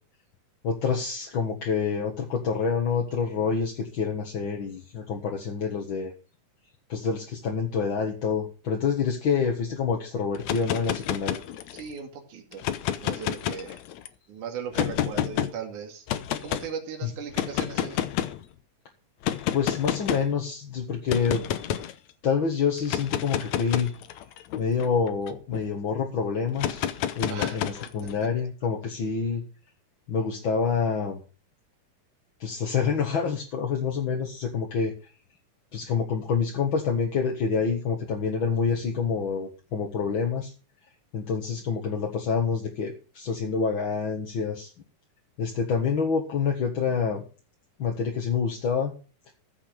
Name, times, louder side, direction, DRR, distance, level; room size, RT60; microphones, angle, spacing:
voice 1, 0.6-6.1 6.9-11.4 17.0-17.1 19.5-21.4 22.2-23.9 24.5-29.4 30.1-31.2 32.4-34.9 35.7-40.5 41.1-44.7 45.4-47.2 47.8-48.9 49.3-49.4, left 6 dB, 45° left, 1 dB, 2.0 m, -27 dB
sound 1, 10.3-11.9 12.5-14.1 14.7-15.5 16.1-16.7 17.3-18.4 19.2-20.3 21.1-21.9 22.8-25.6 26.6-28.1, left 11 dB, 70° left, 2.0 m, -29 dB
voice 2, 11.7-12.6 13.0-13.8 14.3-16.1 16.4-18.0 27.3-27.6 28.2-28.3, right 7 dB, 65° right, 3 dB, 3.6 m, -37 dB
15.0 x 6.3 x 6.1 m, 0.35 s
omnidirectional pair, 3.8 m